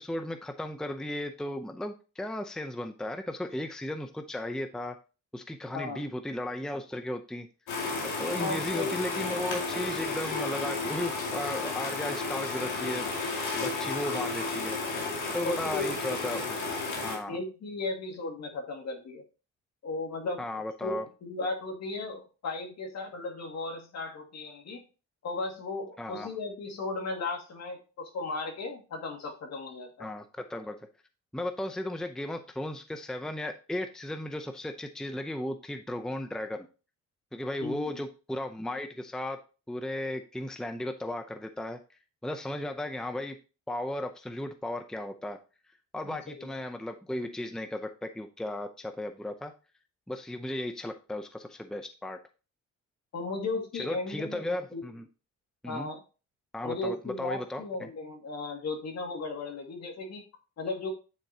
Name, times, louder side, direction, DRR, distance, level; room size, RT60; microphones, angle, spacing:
voice 1, 0.0-5.0 5.3-7.5 8.0-13.1 13.6-14.8 15.3-16.6 17.0-17.4 20.4-21.1 26.0-26.3 30.0-30.8 31.3-36.7 37.3-39.4 39.7-41.8 42.2-43.4 43.7-45.4 45.9-49.5 50.1-52.2 53.7-55.0 55.6-55.9 56.5-57.9, left 1 dB, ahead, 8 dB, 0.6 m, -35 dB
sound 1, 7.7-17.2, left 3 dB, 80° left, 2.4 m, -32 dB
voice 2, 8.3-8.9 14.0-14.2 15.4-15.9 17.3-19.2 19.8-20.5 20.8-24.8 25.2-30.1 37.6-37.9 46.0-46.5 53.1-54.4 54.7-54.9 55.6-56.0 56.6-60.2 60.6-60.9, left 3 dB, 60° left, 2 dB, 2.2 m, -36 dB
9.1 x 4.4 x 2.8 m, 0.33 s
cardioid pair, 90°, 30 cm